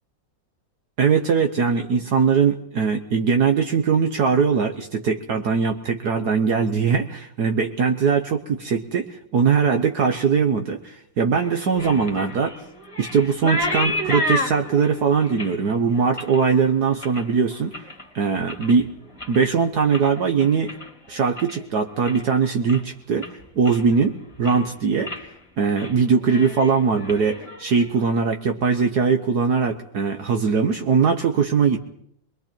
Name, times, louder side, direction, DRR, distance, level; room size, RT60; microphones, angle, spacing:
voice 1, 1.0-12.5 13.0-17.7 18.1-18.9 19.3-20.7 21.1-23.3 23.6-25.1 25.6-31.8, right 5 dB, 60° right, 5 dB, 1.5 m, -21 dB
sound 1, 11.4-18.0 18.4-18.9 19.1-21.6 21.9-22.4 22.7-22.8 23.2-24.0 24.3-24.7 25.0-25.3 25.6-25.9 26.2-28.1, left 1 dB, 15° left, 2.2 m, -31 dB
28.0 x 21.5 x 4.5 m, 0.69 s
omnidirectional pair, 2.0 m